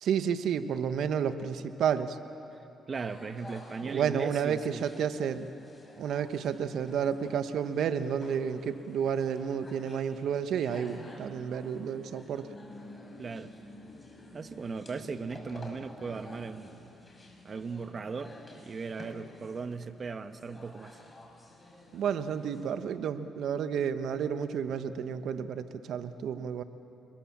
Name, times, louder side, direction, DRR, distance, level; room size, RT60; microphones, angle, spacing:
voice 1, 0.0-2.2 3.8-5.5 6.0-12.5 21.9-26.6, right 7 dB, 75° right, 10 dB, 1.1 m, -31 dB
sound 1, 2.9-22.7, left 2 dB, 25° left, 5.4 m, -50 dB
voice 2, 2.9-4.9 13.2-13.5 14.3-16.9 17.4-21.0, right 5 dB, 40° right, 10 dB, 1.2 m, -38 dB
30.0 x 21.5 x 7.4 m, 2.9 s
cardioid pair, 90°, 0 cm